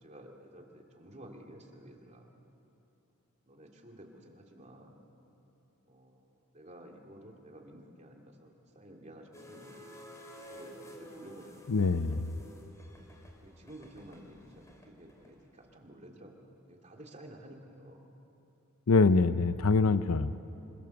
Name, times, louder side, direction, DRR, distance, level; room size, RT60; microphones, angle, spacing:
voice 1, 0.0-2.3 3.5-5.0 5.9-6.3 6.5-10.0 10.4-12.0 13.4-18.1, right 1 dB, 30° right, 1 dB, 2.5 m, -52 dB
sound 1, 9.3-15.7, equal, 15° left, 2.5 m, -52 dB
voice 2, 11.7-12.2 18.9-20.4, left 4 dB, 75° left, 13 dB, 0.6 m, -24 dB
26.0 x 23.5 x 7.1 m, 3.0 s
head